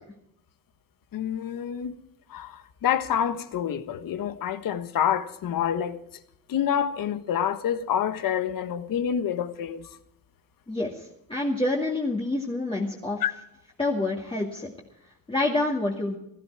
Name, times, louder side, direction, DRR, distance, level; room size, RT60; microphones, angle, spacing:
voice 1, 1.1-1.9 2.3-6.0 6.5-9.9 13.2-13.3, left 9 dB, 80° left, 1.4 m, -27 dB
voice 2, 10.7-13.2 13.8-14.7 15.3-16.2, left 2 dB, 15° left, 2.3 m, -27 dB
17.0 x 15.0 x 4.8 m
cardioid pair, 140°, 33 cm